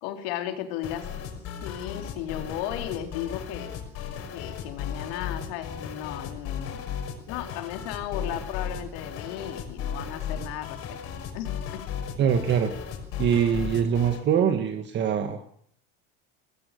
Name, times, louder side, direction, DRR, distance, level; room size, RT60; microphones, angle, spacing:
voice 1, 0.0-1.1 1.6-3.7 4.3-6.9 7.3-11.0 11.3-11.9, left 11 dB, 85° left, 6 dB, 3.8 m, -35 dB
sound 1, 0.8-14.2, left 7 dB, 50° left, 5.9 m, -36 dB
voice 2, 12.2-12.7 13.2-15.4, right 8 dB, 35° right, 7 dB, 2.0 m, -23 dB
22.5 x 19.5 x 6.8 m, 0.62 s
cardioid pair, 150°, 30 cm